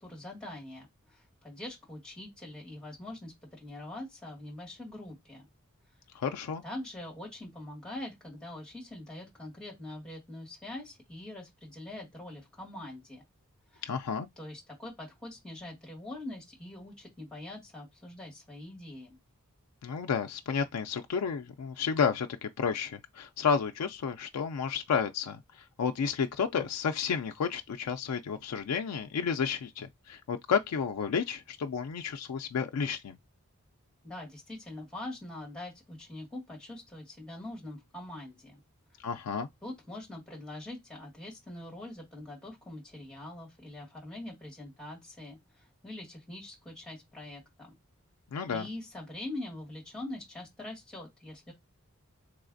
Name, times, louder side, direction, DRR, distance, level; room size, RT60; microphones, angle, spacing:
voice 1, 0.0-5.5 6.6-13.2 13.7-13.8 14.4-19.2 34.0-38.6 39.6-47.7 48.5-51.5, left 1 dB, 5° left, 1.7 m, -43 dB
voice 2, 6.1-6.6 13.8-14.3 19.8-33.2 39.0-39.5 48.3-48.7, left 6 dB, 90° left, 0.4 m, -31 dB
3.4 x 3.2 x 2.5 m
head